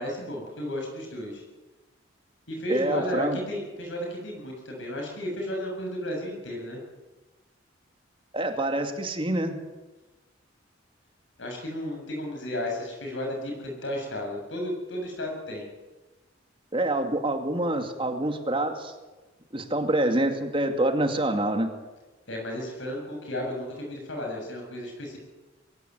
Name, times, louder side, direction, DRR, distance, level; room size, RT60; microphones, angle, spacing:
voice 1, 0.0-1.4 2.5-6.8 11.4-15.7 22.3-25.2, left 1 dB, 70° left, 1 dB, 7.2 m, -33 dB
voice 2, 2.7-3.4 8.3-9.6 16.7-18.9 19.5-21.7, right 1 dB, 25° right, 6 dB, 2.3 m, -26 dB
22.5 x 17.0 x 9.5 m, 1.2 s
head